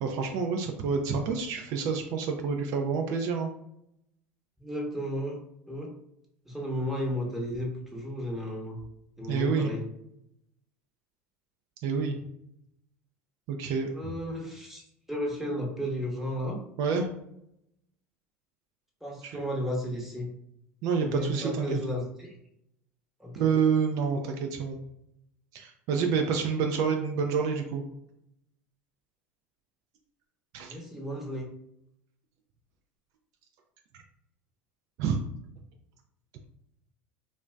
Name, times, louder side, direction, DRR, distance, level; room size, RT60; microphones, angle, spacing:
voice 1, 0.0-3.5 9.3-9.7 11.8-12.2 13.5-13.9 16.8-17.1 19.2-19.4 20.8-21.8 23.4-24.8 25.5-27.8 30.5-30.8 35.0-35.2, right 5 dB, 60° right, 4 dB, 0.4 m, -28 dB
voice 2, 4.6-5.4 5.7-5.9 6.4-8.8 9.2-9.9 13.9-16.6 19.0-20.3 21.0-22.3 23.2-23.5 30.7-31.5, equal, 5° right, -1 dB, 0.9 m, -33 dB
2.6 x 2.1 x 3.3 m, 0.78 s
hypercardioid pair, 90°, 7 cm